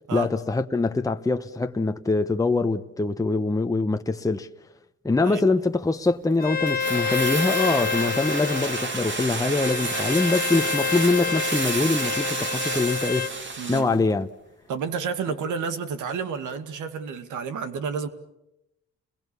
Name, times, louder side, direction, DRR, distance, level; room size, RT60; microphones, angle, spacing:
voice 1, 0.1-4.5 5.0-13.3 13.7-14.3, left 3 dB, 10° left, 0.9 m, -24 dB
Bowed string instrument, 6.4-13.3, left 6 dB, 30° left, 1.4 m, -29 dB
sound 1, 6.7-14.0 14.2-14.3, right 3 dB, 40° right, 2.6 m, -30 dB
voice 2, 13.6-14.0 14.7-18.1, right 6 dB, 80° right, 2.3 m, -30 dB
30.0 x 22.0 x 7.0 m
cardioid pair, 90°, 30 cm